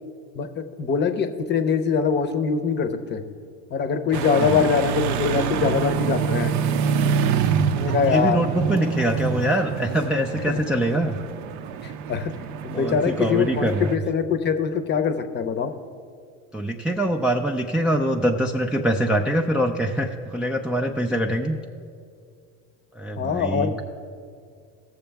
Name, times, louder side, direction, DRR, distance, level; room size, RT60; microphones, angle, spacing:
voice 1, 0.3-3.2 3.7-6.5 7.7-8.4 10.5-10.6 11.8-12.3 12.6-15.7 23.2-23.7, left 6 dB, 30° left, 9 dB, 0.7 m, -23 dB
voice 2, 4.1-4.7 7.9-11.2 12.7-14.0 16.5-21.6 22.9-23.8, right 1 dB, 5° right, 0 dB, 0.3 m, -24 dB
sound 1, 4.1-14.0, right 7 dB, 55° right, 0.6 m, -26 dB
16.5 x 6.9 x 3.4 m, 2.3 s
supercardioid pair, 110°, 34 cm